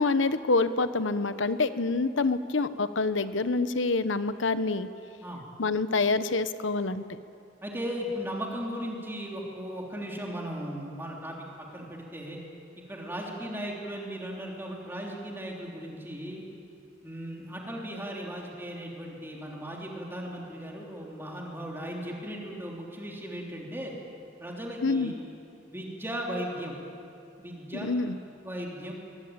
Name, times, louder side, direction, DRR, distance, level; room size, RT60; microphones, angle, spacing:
voice 1, 0.0-4.9 5.6-7.0 24.8-25.1 27.7-28.2, left 3 dB, 90° left, 12 dB, 1.0 m, -26 dB
voice 2, 7.6-12.4 12.9-16.4 17.0-23.9 24.4-25.1 25.7-26.8 27.4-27.9 28.4-28.9, equal, 10° right, -2 dB, 3.4 m, -37 dB
22.5 x 22.0 x 8.9 m, 2.7 s
head